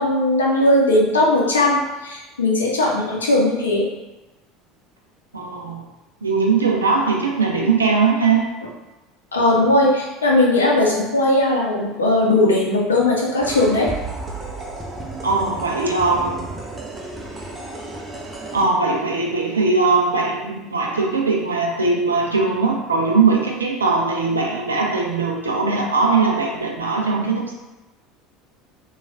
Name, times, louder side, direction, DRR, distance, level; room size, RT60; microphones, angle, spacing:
voice 1, 0.0-3.9 9.3-13.9, left 1 dB, 75° left, -2 dB, 0.5 m, -18 dB
voice 2, 5.3-5.8 6.2-8.5 15.2-16.5 18.5-27.5, right 4 dB, 80° right, 0 dB, 0.4 m, -20 dB
sound 1, 13.4-18.7, right 2 dB, 20° right, 0.5 m, -33 dB
3.0 x 2.2 x 2.6 m, 1.1 s
figure-of-eight pair, 70°, 0 cm